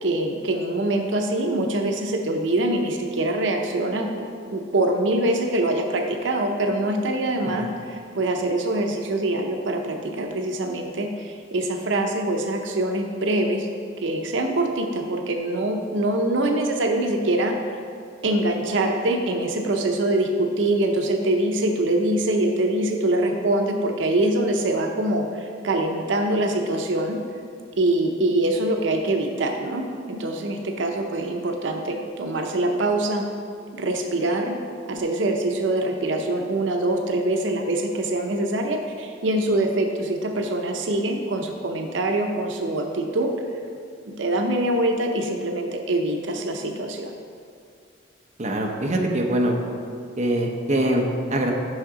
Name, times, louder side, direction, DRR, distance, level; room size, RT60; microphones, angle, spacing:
voice 1, 0.0-13.7 14.0-17.6 18.2-27.2 27.8-33.2 33.7-34.6 34.9-43.3 44.1-47.1, right 1 dB, 85° right, 3 dB, 0.6 m, -24 dB
voice 2, 48.4-49.6 50.2-51.5, right 1 dB, 40° right, 1 dB, 0.7 m, -23 dB
6.4 x 5.6 x 4.8 m, 2.3 s
head